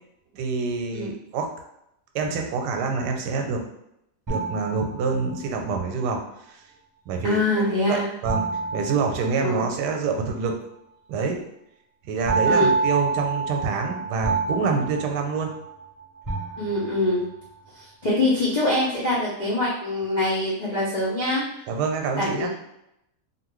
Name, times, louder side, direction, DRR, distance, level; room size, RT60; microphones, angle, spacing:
voice 1, 0.3-1.5 2.1-3.6 4.3-6.2 6.5-6.6 7.1-7.4 7.9-8.4 8.7-10.6 11.1-11.4 12.1-15.5 21.7-22.5, right 4 dB, 90° right, 3 dB, 1.2 m, -26 dB
sound 1, 4.3-5.5 8.3-9.9 12.3-15.8 16.3-17.2, right 4 dB, 25° right, 0.4 m, -27 dB
voice 2, 7.2-8.0 9.4-9.7 12.5-12.7 16.6-17.2 17.8-21.6 22.1-22.5, left 1 dB, 65° left, -8 dB, 0.4 m, -24 dB
2.8 x 2.5 x 3.0 m, 0.81 s
omnidirectional pair, 1.7 m